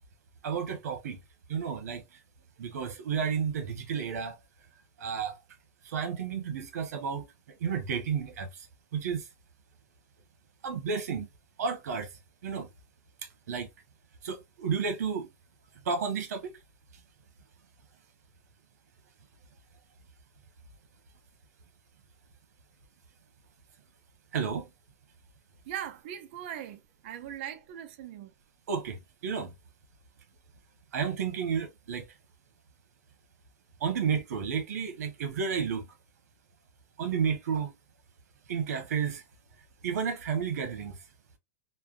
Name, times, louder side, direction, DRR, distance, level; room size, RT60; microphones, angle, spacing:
voice 1, 0.4-1.2 1.5-2.0 2.6-4.4 5.0-5.4 5.9-7.3 7.6-8.5 8.9-9.2 10.6-11.3 11.6-12.1 12.4-12.7 13.5-13.7 14.2-15.3 15.8-16.5 24.3-24.7 28.7-29.5 30.9-32.1 33.8-35.9 37.0-37.7 38.5-39.2 39.8-41.0, right 6 dB, 80° right, 1.1 m, -31 dB
voice 2, 25.7-28.3, right 10 dB, 45° right, 0.5 m, -40 dB
3.3 x 2.1 x 2.4 m
supercardioid pair, 170°, 8 cm